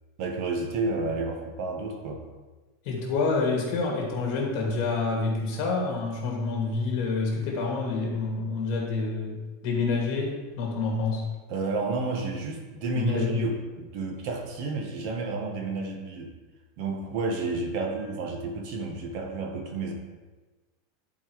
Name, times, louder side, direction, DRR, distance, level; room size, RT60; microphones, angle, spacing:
voice 1, 0.2-2.2 11.5-16.3 16.8-19.9, right 3 dB, 50° right, 2 dB, 1.4 m, -31 dB
voice 2, 2.8-11.2 12.9-13.5, left 3 dB, 45° left, -1 dB, 2.5 m, -28 dB
11.0 x 4.6 x 4.8 m, 1.2 s
supercardioid pair, 165°, 0 cm